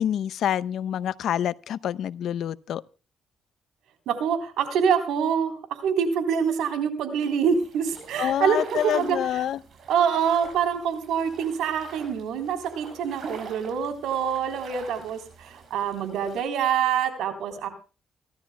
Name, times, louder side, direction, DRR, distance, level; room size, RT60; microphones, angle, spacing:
voice 1, 0.0-2.8 8.2-9.6, left 10 dB, 70° left, 0.6 m, -27 dB
voice 2, 4.1-9.5 9.9-17.7, right 7 dB, 85° right, 3.6 m, -26 dB
sound 1, 7.5-16.4, right 5 dB, 60° right, 5.9 m, -44 dB
28.5 x 12.5 x 2.2 m
cardioid pair, 90°, 0 cm